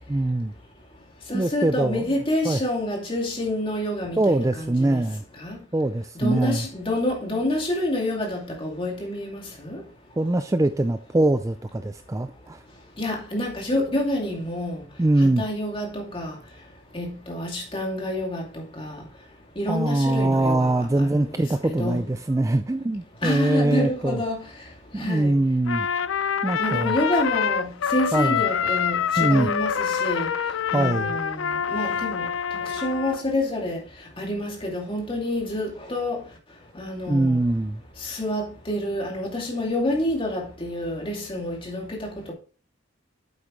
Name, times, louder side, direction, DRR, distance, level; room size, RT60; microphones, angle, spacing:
voice 1, 0.1-0.5 1.3-2.1 2.4-2.6 4.2-5.2 5.7-6.6 10.2-12.6 15.0-15.4 19.7-24.2 24.9-25.9 26.4-27.0 28.1-28.4 29.2-29.5 30.7-31.2 37.1-37.8, right 2 dB, 15° right, 0.4 m, -23 dB
voice 2, 1.3-5.0 5.4-5.5 6.2-9.8 13.0-14.8 15.2-16.3 16.9-18.4 18.8-18.9 19.6-20.8 21.4-21.5 21.8-22.0 23.2-24.3 25.0-25.3 26.6-29.7 30.0-30.3 30.7-31.3 31.7-32.3 32.8-33.8 34.2-36.2 36.8-37.3 38.0-42.3, left 1 dB, 25° left, 2.5 m, -28 dB
Trumpet, 25.7-33.2, left 7 dB, 85° left, 0.5 m, -26 dB
8.8 x 7.9 x 3.1 m
head